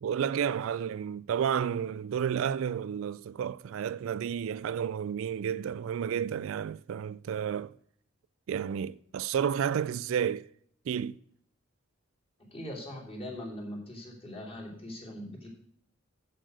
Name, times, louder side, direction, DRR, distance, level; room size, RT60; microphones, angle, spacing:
voice 1, 0.0-7.7 8.5-10.5 10.9-11.2, right 8 dB, 65° right, 0.3 m, -31 dB
voice 2, 12.4-15.5, left 1 dB, 25° left, 3.1 m, -41 dB
7.7 x 7.6 x 6.3 m
head